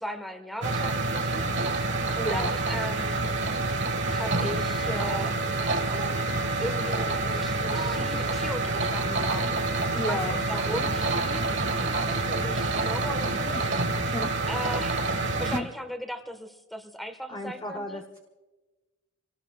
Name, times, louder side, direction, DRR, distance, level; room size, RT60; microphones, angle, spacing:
voice 1, 0.0-1.4 2.1-3.2 4.0-5.4 6.6-11.5 11.8-13.7 14.5-18.0, equal, ahead, 7 dB, 1.3 m, -37 dB
sound 1, 0.6-15.6, right 2 dB, 55° right, 1.6 m, -27 dB
voice 2, 2.2-2.6 9.9-10.4 13.2-13.4 14.1-14.3 15.5-15.7 17.3-18.2, left 1 dB, 20° left, 2 dB, 1.0 m, -33 dB
sound 2, 5.0-5.2 5.9-6.1 6.9-7.1 7.6-8.1 8.7-8.9 10.9-11.0 11.9-12.2 13.5-13.6 14.4-14.5, right 3 dB, 40° right, 2.2 m, -39 dB
27.5 x 19.0 x 2.4 m, 1.2 s
head